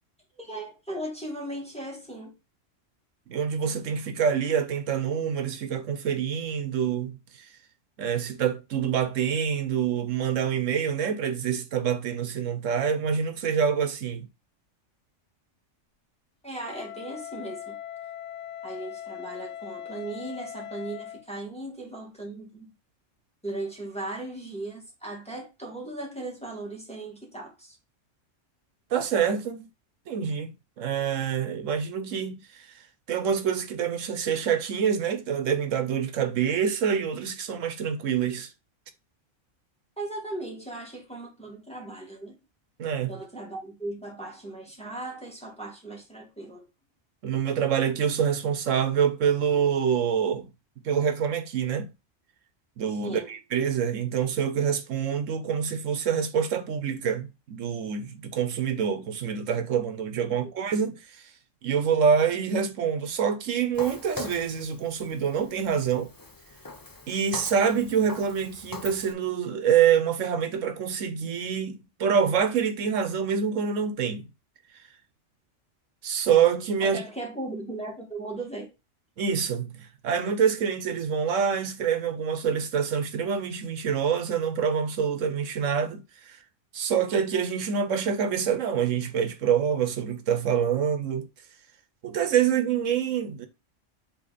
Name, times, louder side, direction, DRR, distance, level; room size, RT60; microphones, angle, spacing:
voice 1, 0.4-2.3 16.4-17.8 18.6-22.7 23.4-27.8 40.0-42.4 43.1-46.7 52.9-53.4 60.4-60.5 76.8-78.7, right 2 dB, 5° left, 1.8 m, -37 dB
voice 2, 3.3-7.5 8.0-14.3 28.9-29.7 30.1-30.5 30.8-32.6 33.1-38.5 42.8-43.1 47.2-50.5 50.8-51.9 52.8-61.0 61.6-66.1 67.1-74.3 76.0-77.0 79.2-86.4 86.7-91.3 92.0-93.5, right 7 dB, 80° right, 1.2 m, -26 dB
Wind instrument woodwind instrument, 16.6-21.3, left 10 dB, 70° left, 1.2 m, -40 dB
Walk footsteps, 63.7-69.1, left 2 dB, 20° left, 0.7 m, -42 dB
7.9 x 3.3 x 4.1 m
omnidirectional pair, 1.3 m